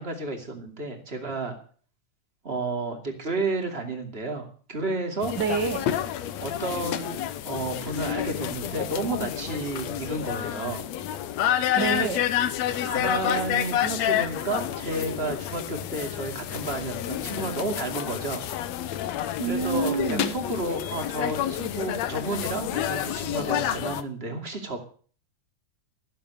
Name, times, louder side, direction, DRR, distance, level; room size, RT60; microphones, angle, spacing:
voice 1, 0.0-1.6 2.4-5.3 6.4-10.9 11.9-12.2 12.8-18.4 19.4-24.8, right 2 dB, 20° right, 3 dB, 2.4 m, -31 dB
sound 1, 5.2-24.0, left 11 dB, 70° left, 1.8 m, -29 dB
voice 2, 5.4-5.9 11.7-12.2 19.4-20.3, right 4 dB, 75° right, 6 dB, 1.0 m, -27 dB
14.0 x 7.8 x 8.2 m, 0.44 s
omnidirectional pair, 3.8 m